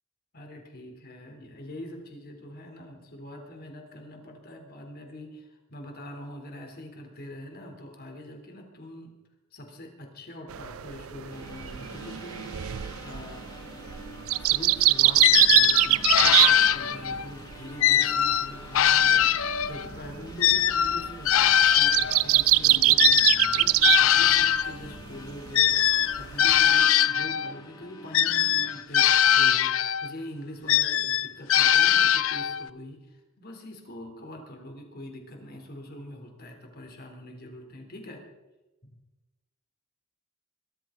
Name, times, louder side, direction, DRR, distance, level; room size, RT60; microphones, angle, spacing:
voice 1, 0.3-9.1 9.5-13.4 14.4-38.2, left 1 dB, 45° left, 3 dB, 3.3 m, -43 dB
sound 1, 10.5-17.2 17.5-24.0 24.3-25.0 25.4-26.8, right 16 dB, 75° right, 0.5 m, -23 dB
sound 2, 11.3-28.8, left 1 dB, 20° left, 1.8 m, -47 dB
sound 3, 15.2-17.3 17.8-19.9 20.4-24.7 25.5-27.5 28.1-30.1 30.7-32.7, left 10 dB, 70° left, 0.5 m, -22 dB
22.0 x 13.5 x 3.8 m, 1.1 s
head